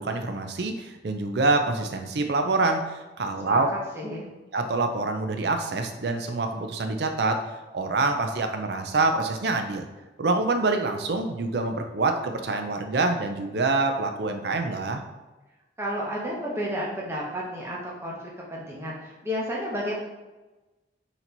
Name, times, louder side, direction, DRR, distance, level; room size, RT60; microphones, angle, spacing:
voice 1, 0.0-3.7 4.5-7.4 7.7-9.9 10.2-15.0, right 3 dB, 60° right, 5 dB, 0.5 m, -26 dB
voice 2, 3.9-4.3 15.8-18.2 18.5-19.9, equal, 15° right, -4 dB, 0.9 m, -31 dB
4.4 x 2.9 x 3.9 m, 1.1 s
head